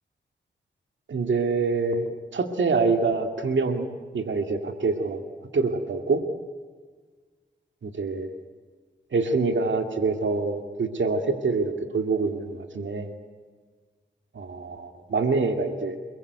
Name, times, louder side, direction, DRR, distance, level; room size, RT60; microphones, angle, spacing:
voice 1, 1.1-2.1 2.3-3.9 4.1-5.2 5.5-6.2 7.8-8.3 9.1-13.1 14.3-16.0, right 4 dB, 80° right, 6 dB, 2.3 m, -25 dB
29.5 x 21.5 x 8.2 m, 1.5 s
cardioid pair, 70°, 19 cm